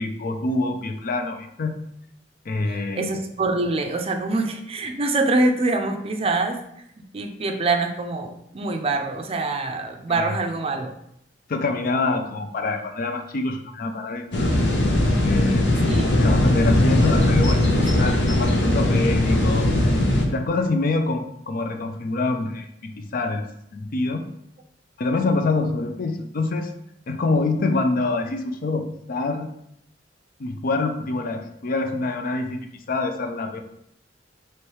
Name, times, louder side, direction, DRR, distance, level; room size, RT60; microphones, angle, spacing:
voice 1, 0.0-1.7 2.5-3.1 10.1-10.3 11.5-14.5 15.2-15.7 16.2-19.7 20.2-22.7 23.0-23.5 23.7-24.2 25.0-26.7 27.1-29.5 30.4-33.6, left 3 dB, 55° left, 6 dB, 0.4 m, -25 dB
voice 2, 2.6-6.6 7.0-10.9 15.9-16.1, right 2 dB, 35° right, 5 dB, 0.5 m, -25 dB
sound 1, 14.3-20.3, left 1 dB, 75° left, 0.8 m, -19 dB
3.2 x 3.0 x 4.6 m, 0.74 s
head